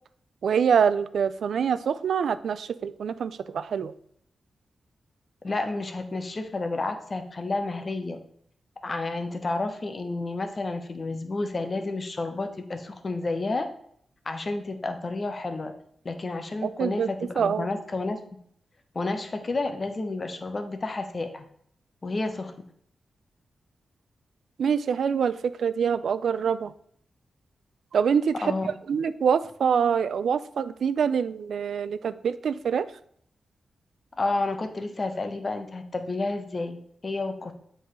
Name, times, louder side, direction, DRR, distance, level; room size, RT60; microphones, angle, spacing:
voice 1, 0.4-3.9 16.6-17.1 17.4-17.7 24.6-26.7 27.9-28.5 28.9-32.9, right 7 dB, 80° right, 14 dB, 0.3 m, -25 dB
voice 2, 5.4-8.2 8.8-13.7 14.2-15.7 16.0-18.2 18.9-21.5 22.0-22.5 28.4-28.7 34.2-36.8 37.0-37.5, left 3 dB, 40° left, 6 dB, 0.9 m, -30 dB
7.8 x 3.8 x 3.2 m, 0.65 s
cardioid pair, 85°, 0 cm